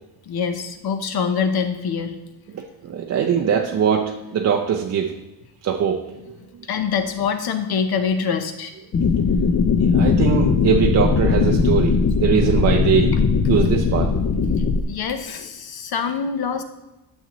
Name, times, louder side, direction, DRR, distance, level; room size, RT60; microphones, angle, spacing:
voice 1, 0.3-2.2 6.7-8.7 14.9-16.6, left 6 dB, 55° left, 8 dB, 0.9 m, -24 dB
voice 2, 2.5-5.2 5.6-6.4 9.8-13.2 13.5-14.1, right 7 dB, 35° right, 2 dB, 0.4 m, -21 dB
sound 1, 8.9-14.8, left 5 dB, 30° left, 0.4 m, -19 dB
11.5 x 7.2 x 3.0 m, 0.97 s
cardioid pair, 175°, 47 cm